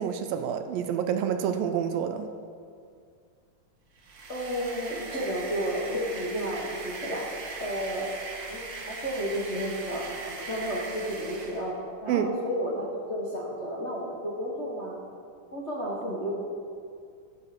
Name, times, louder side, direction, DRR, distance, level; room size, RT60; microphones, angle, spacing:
voice 1, 0.0-2.3 12.1-12.3, right 8 dB, 80° right, 8 dB, 2.3 m, -28 dB
sound 1, 3.9-11.7, right 3 dB, 50° right, 1.4 m, -40 dB
voice 2, 4.3-7.3 7.6-8.1 8.5-14.9 15.5-16.4, equal, 85° left, -5 dB, 0.6 m, -32 dB
14.0 x 7.3 x 6.1 m, 2.2 s
omnidirectional pair, 4.3 m